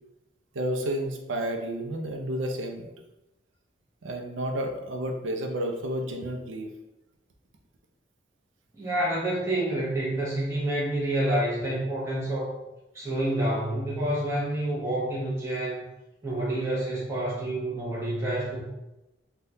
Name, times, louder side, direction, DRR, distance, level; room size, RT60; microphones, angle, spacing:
voice 1, 0.5-2.9 4.0-6.7, right 1 dB, 85° right, 3 dB, 0.5 m, -31 dB
voice 2, 8.8-12.5 12.9-15.8 16.2-18.7, right 1 dB, 15° right, -8 dB, 0.7 m, -28 dB
3.4 x 2.3 x 2.7 m, 0.94 s
head